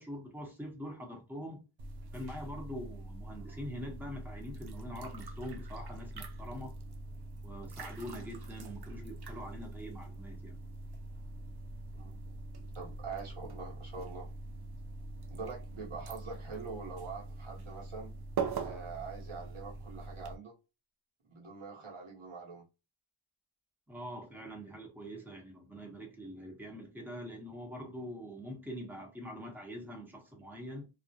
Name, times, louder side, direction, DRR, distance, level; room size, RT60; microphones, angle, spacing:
voice 1, 0.0-1.6 2.1-6.7 7.4-10.6 23.9-30.9, equal, 5° right, 0.8 m, -44 dB
sound 1, 1.8-20.4, right 3 dB, 55° right, 0.5 m, -43 dB
voice 2, 12.7-14.3 15.3-18.1 18.6-20.5 21.3-22.6, right 4 dB, 90° right, 0.9 m, -44 dB
2.4 x 2.0 x 2.7 m
wide cardioid pair, 55°, 49 cm